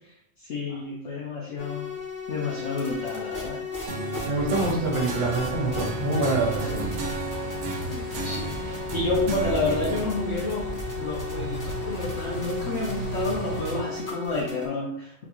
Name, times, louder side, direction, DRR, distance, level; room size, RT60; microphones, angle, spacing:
voice 1, 0.4-1.9 2.3-3.6 7.9-15.2, left 2 dB, 60° left, -3 dB, 0.8 m, -30 dB
sound 1, 1.6-14.7, left 4 dB, 20° left, 0.6 m, -36 dB
sound 2, 3.9-10.0, right 4 dB, 85° right, 1.1 m, -34 dB
voice 2, 4.0-6.8, right 2 dB, 60° right, -3 dB, 1.4 m, -26 dB
sound 3, 4.3-13.8, right 1 dB, 80° left, 1.7 m, -36 dB
3.9 x 2.3 x 2.9 m, 0.78 s
omnidirectional pair, 1.6 m